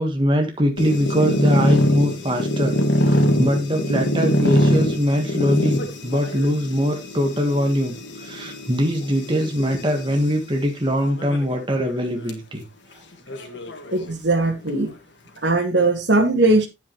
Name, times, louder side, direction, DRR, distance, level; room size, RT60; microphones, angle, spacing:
voice 1, 0.0-2.7 3.0-12.6, equal, 25° right, 1.5 m, -22 dB
sound 1, 0.8-10.2 11.0-11.5 11.9-12.0 12.3-12.4 13.3-14.4, equal, 80° left, 1.9 m, -23 dB
voice 2, 13.9-14.9 15.4-16.7, right 2 dB, 70° right, 2.3 m, -19 dB
9.9 x 8.5 x 3.1 m
head